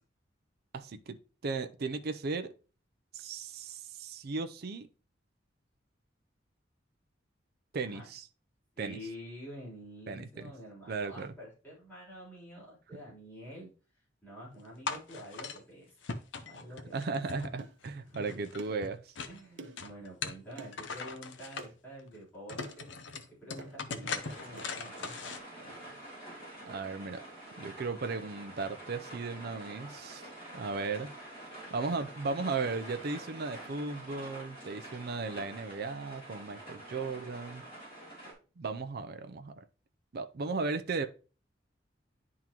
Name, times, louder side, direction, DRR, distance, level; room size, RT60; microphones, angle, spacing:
voice 1, 0.7-2.5 3.1-4.9 7.7-8.3 8.8-9.0 10.1-10.5 10.9-11.3 16.9-19.1 26.7-27.2 27.6-31.1 31.7-37.6 38.6-39.6 40.1-41.1, right 4 dB, 55° right, 0.5 m, -36 dB
voice 2, 8.8-13.7 14.2-16.1 16.4-16.9 18.0-18.4 19.3-22.9 23.3-26.2, equal, 10° left, 3.6 m, -48 dB
sound 1, 14.9-15.6 16.0-17.9 18.1-19.4 19.8-21.7 22.2-22.3 22.5-25.4, left 5 dB, 75° left, 0.7 m, -40 dB
sound 2, 17.6-17.8 18.6-18.8 19.6-19.9 20.6-20.8 21.6-21.7 22.6-22.9 23.6-23.8 24.6-24.7, right 2 dB, 85° right, 0.8 m, -47 dB
sound 3, 24.2-38.3, right 1 dB, 30° left, 3.3 m, -47 dB
10.5 x 3.7 x 2.9 m
head